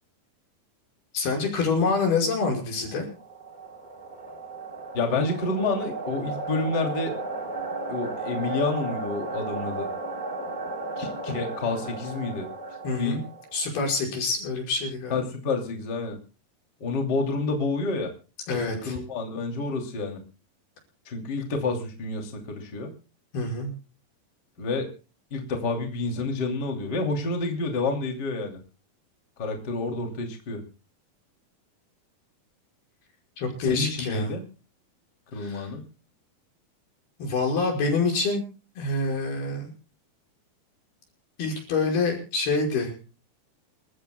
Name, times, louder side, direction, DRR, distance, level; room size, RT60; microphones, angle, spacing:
voice 1, 1.1-3.1 12.8-13.2 13.5-15.2 18.5-19.0 23.3-23.7 33.4-34.3 35.3-35.7 37.2-38.4 38.8-39.7 41.4-42.9, left 3 dB, 80° left, 1 dB, 7.4 m, -26 dB
sound 1, 2.8-13.7, right 2 dB, 15° right, 2.4 m, -35 dB
voice 2, 4.9-7.1 7.9-9.9 11.0-12.5 13.0-13.2 15.1-16.2 16.8-18.1 18.5-18.6 18.8-20.2 21.0-22.9 24.6-24.9 25.3-28.6 29.4-30.6 33.6-34.4 35.3-35.8, left 3 dB, 30° left, 3 dB, 2.9 m, -29 dB
28.5 x 14.5 x 2.2 m, 0.33 s
omnidirectional pair, 4.4 m